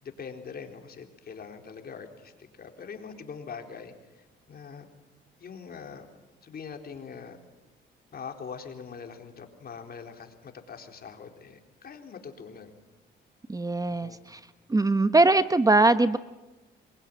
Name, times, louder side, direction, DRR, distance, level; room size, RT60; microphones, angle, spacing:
voice 1, 0.0-4.9 5.4-6.1 6.4-7.4 8.1-12.7 13.9-14.2, left 6 dB, 50° left, 4 dB, 4.1 m, -43 dB
voice 2, 13.5-14.4 14.7-16.2, right 2 dB, 15° right, 12 dB, 1.0 m, -21 dB
27.5 x 22.5 x 9.5 m, 1.1 s
cardioid pair, 90°, 20 cm